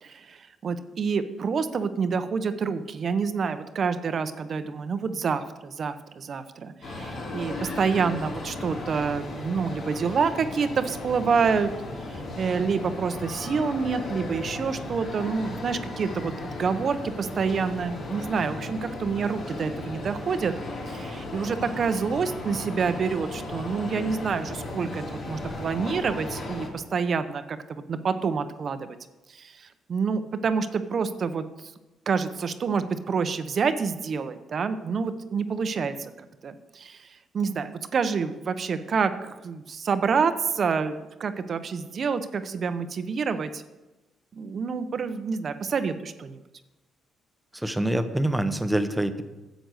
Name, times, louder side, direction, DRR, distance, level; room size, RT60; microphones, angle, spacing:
voice 1, 0.0-11.7 12.1-20.5 20.9-29.0 29.3-31.4 32.1-37.1 37.3-43.6 44.3-46.4, right 5 dB, 50° right, 10 dB, 0.8 m, -28 dB
sound 1, 6.8-26.7, left 2 dB, 65° left, 3.3 m, -36 dB
voice 2, 47.5-49.2, right 1 dB, 10° right, 10 dB, 0.9 m, -25 dB
10.0 x 7.8 x 6.4 m, 1.1 s
cardioid pair, 90°, 0 cm